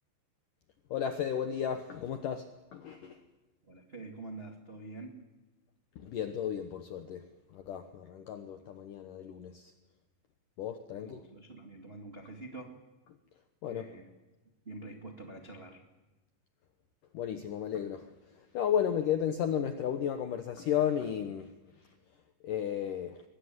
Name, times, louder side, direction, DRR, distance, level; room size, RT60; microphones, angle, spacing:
voice 1, 0.9-2.5 2.7-3.2 6.0-7.3 7.5-9.7 10.6-11.2 13.6-13.9 17.1-18.1 18.5-21.5 22.4-23.2, left 9 dB, 80° left, 8 dB, 1.9 m, -33 dB
voice 2, 3.6-5.2 10.9-12.8 13.6-14.1 14.6-15.8, right 2 dB, 80° right, 3 dB, 0.5 m, -46 dB
23.0 x 20.5 x 9.7 m, 1.1 s
omnidirectional pair, 5.4 m